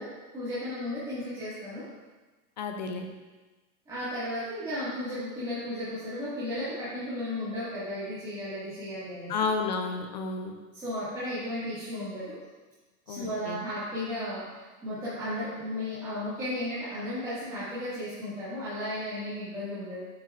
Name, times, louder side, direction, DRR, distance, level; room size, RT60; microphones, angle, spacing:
voice 1, 0.0-1.8 3.8-9.3 10.7-12.4 13.0-20.0, left 1 dB, 10° right, -14 dB, 1.8 m, -34 dB
voice 2, 2.6-3.1 9.3-10.6 13.1-13.6, left 4 dB, 35° left, 5 dB, 0.4 m, -31 dB
8.3 x 7.5 x 2.4 m, 1.2 s
supercardioid pair, 170°, 43 cm